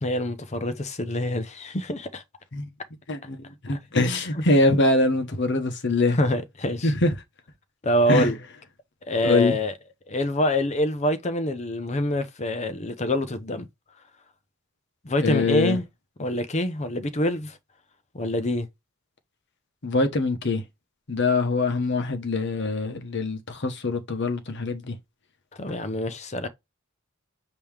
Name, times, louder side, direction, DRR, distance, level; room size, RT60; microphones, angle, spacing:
voice 1, 0.0-2.2 4.3-4.4 6.1-6.9 7.8-8.4 9.0-9.7 10.1-13.7 15.0-15.8 16.2-17.6 18.1-18.7 25.6-26.5, left 1 dB, 35° left, 0.7 m, -25 dB
voice 2, 3.1-6.2 6.8-7.1 8.1-8.3 9.2-9.6 15.2-15.8 19.8-20.6 21.1-25.0, left 2 dB, 55° left, 1.1 m, -23 dB
5.4 x 2.9 x 3.4 m
head